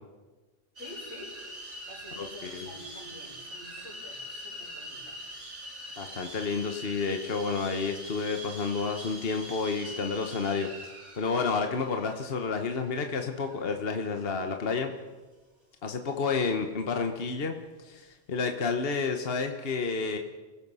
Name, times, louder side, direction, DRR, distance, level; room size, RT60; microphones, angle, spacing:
voice 1, 0.8-1.3 1.9-5.2, left 1 dB, 90° left, -2 dB, 6.5 m, -48 dB
sound 1, 0.8-14.4, right 1 dB, 70° right, 4.8 m, -44 dB
voice 2, 2.1-2.7 6.0-14.9 15.8-20.2, left 4 dB, 55° left, 5 dB, 1.4 m, -30 dB
28.5 x 17.0 x 5.6 m, 1.3 s
omnidirectional pair, 1.2 m